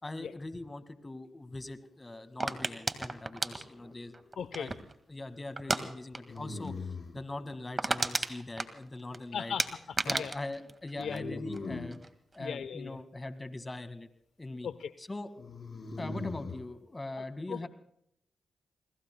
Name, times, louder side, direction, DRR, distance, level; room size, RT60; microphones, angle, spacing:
voice 1, 0.0-4.1 4.6-4.7 5.1-9.5 10.1-12.0 12.3-14.1 14.4-14.7 15.1-15.3 16.0-17.7, left 2 dB, 25° left, 10 dB, 1.9 m, -41 dB
sound 1, 2.4-5.0 5.6-5.8 6.1-6.4 6.6-6.7 7.1-7.2 7.5-9.2 9.6-11.6 11.9-12.4, right 3 dB, 35° right, 1.9 m, -33 dB
sound 2, 3.5-4.2 6.2-7.2 11.0-12.0 15.4-16.6, left 3 dB, 55° left, 5.1 m, -40 dB
voice 2, 4.4-4.7 9.3-10.3 11.0-11.4 12.4-13.0 14.6-14.9 17.2-17.7, left 7 dB, 80° left, 13 dB, 0.8 m, -38 dB
30.0 x 21.0 x 2.3 m, 0.70 s
cardioid pair, 60°, 0 cm